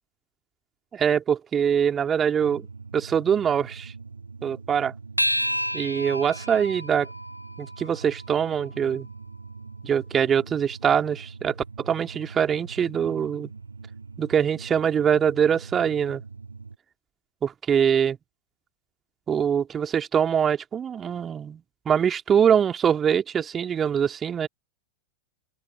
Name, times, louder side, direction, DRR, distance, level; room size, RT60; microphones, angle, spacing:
voice 1, 0.9-2.7 2.9-3.9 4.4-4.9 5.7-7.1 7.6-9.1 9.8-13.5 14.2-16.2 17.4-18.2 19.3-21.6 21.9-24.5, right 8 dB, 25° right, 2.6 m, -23 dB
sound 1, 2.4-16.8, right 4 dB, 75° right, 2.5 m, -42 dB
sound 2, 5.2-9.9, equal, 90° left, 1.8 m, -31 dB
open air
figure-of-eight pair, 90°, 0 cm